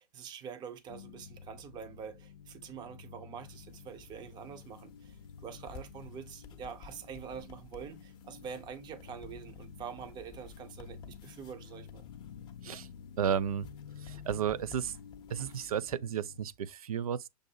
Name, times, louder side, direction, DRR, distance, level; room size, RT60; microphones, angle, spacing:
voice 1, 0.0-12.1, right 7 dB, 20° right, 0.7 m, -45 dB
sound 1, 0.9-16.4, left 7 dB, 60° left, 0.4 m, -51 dB
sound 2, 3.4-16.0, left 5 dB, 20° left, 0.7 m, -55 dB
voice 2, 13.2-13.7 14.0-15.0 15.3-17.3, right 8 dB, 65° right, 0.4 m, -33 dB
6.6 x 2.6 x 2.8 m
figure-of-eight pair, 105°, 20 cm